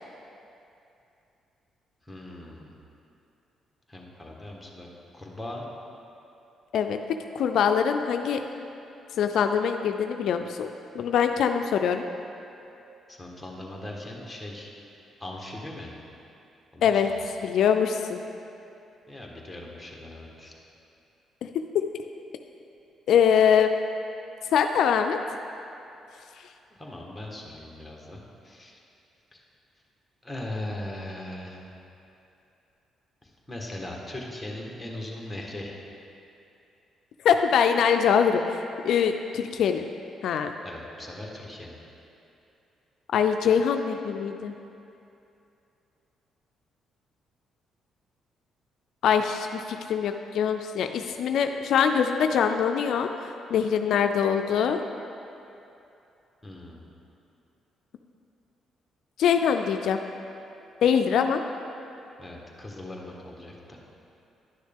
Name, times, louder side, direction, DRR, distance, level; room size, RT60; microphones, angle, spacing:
voice 1, 2.0-2.7 3.9-5.7 13.1-14.7 15.2-15.9 16.7-17.3 19.1-20.5 26.8-28.8 29.3-29.4 30.2-31.6 33.2-35.8 40.6-41.8 56.4-56.9 62.2-63.8, left 1 dB, 5° left, -2 dB, 1.4 m, -39 dB
voice 2, 7.3-8.4 9.2-10.7 10.9-12.0 16.8-17.1 17.4-18.2 21.4-21.5 21.7-21.8 23.1-23.7 24.5-25.2 37.2-39.8 40.2-40.5 43.1-44.5 49.0-49.6 49.9-54.8 59.2-60.0 60.8-61.4, left 7 dB, 75° left, 6 dB, 0.3 m, -23 dB
10.5 x 6.3 x 3.5 m, 2.8 s
cardioid pair, 90°, 0 cm